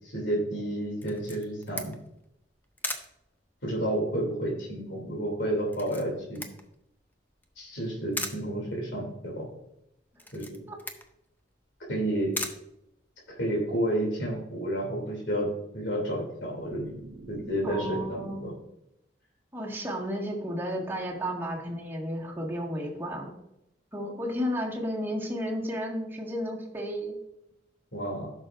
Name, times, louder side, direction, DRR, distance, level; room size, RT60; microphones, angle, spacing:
voice 1, 0.1-1.9 3.6-6.4 7.6-9.5 10.3-10.6 11.9-12.4 13.3-15.5 15.7-16.9 17.3-18.5 27.9-28.3, right 1 dB, 70° left, -3 dB, 2.9 m, -30 dB
Camera, 1.0-13.5, left 2 dB, 10° left, 0.6 m, -41 dB
sound 1, 16.2-18.8, right 2 dB, 55° right, 0.8 m, -46 dB
voice 2, 17.6-18.6 19.5-23.3 23.9-27.2, equal, 10° right, -4 dB, 1.8 m, -33 dB
14.5 x 6.2 x 2.6 m, 0.83 s
head